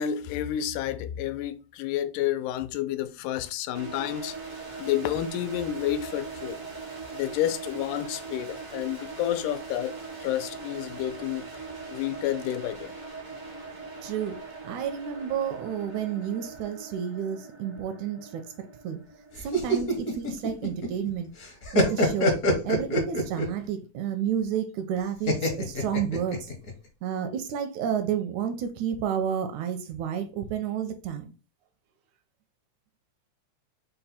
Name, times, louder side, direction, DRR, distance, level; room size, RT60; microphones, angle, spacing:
voice 1, 0.0-4.3 4.8-6.6 7.1-9.9 10.2-11.5 11.9-12.9 19.3-19.4, left 12 dB, 85° left, 2.1 m, -30 dB
sound 1, 3.7-20.6, right 4 dB, 65° right, 0.7 m, -41 dB
voice 2, 14.0-14.4 14.6-18.4 18.8-19.0 19.4-21.3 21.7-22.4 22.6-26.5 27.0-31.3, right 8 dB, 80° right, 1.9 m, -31 dB
sound 2, 19.4-21.1 21.4-23.6 25.3-26.7, equal, 60° left, 0.9 m, -25 dB
5.3 x 2.2 x 4.2 m
omnidirectional pair, 3.6 m